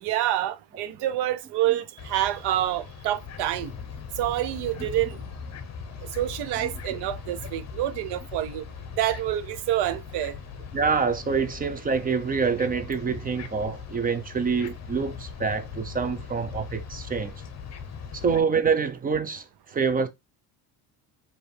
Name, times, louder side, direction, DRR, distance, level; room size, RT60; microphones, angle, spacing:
voice 1, 0.0-3.7 4.2-5.2 6.1-8.6 9.0-10.4, right 13 dB, 85° right, 0.7 m, -27 dB
sound 1, 2.0-18.4, left 6 dB, 40° left, 0.8 m, -40 dB
voice 2, 6.6-7.0 10.7-17.4 18.1-20.1, right 5 dB, 25° right, 0.5 m, -26 dB
4.8 x 2.7 x 3.2 m
cardioid pair, 140°, 39 cm